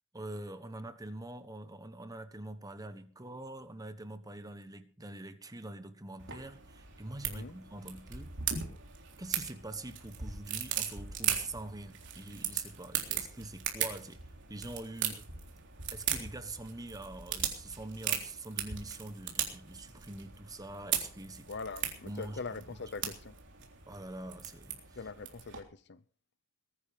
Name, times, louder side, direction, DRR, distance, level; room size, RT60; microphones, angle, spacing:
voice 1, 0.1-8.4 9.2-14.2 14.5-15.3 15.9-21.5 22.0-22.8 23.0-23.1 23.9-24.8, right 2 dB, 15° right, 1.3 m, -44 dB
sound 1, 6.2-25.6, right 9 dB, 55° right, 3.6 m, -38 dB
voice 2, 7.3-7.6 21.5-23.3 25.0-26.0, left 4 dB, 50° left, 0.7 m, -42 dB
21.5 x 10.5 x 5.2 m
head